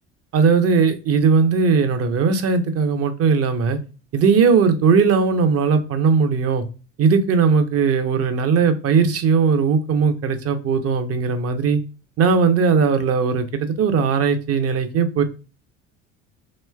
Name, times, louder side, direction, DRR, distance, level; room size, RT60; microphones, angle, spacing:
voice 1, 0.3-3.8 4.1-6.6 7.0-11.8 12.2-15.2, right 5 dB, 40° right, 9 dB, 0.7 m, -18 dB
3.0 x 2.9 x 2.2 m, 0.33 s
hypercardioid pair, 70°, 39 cm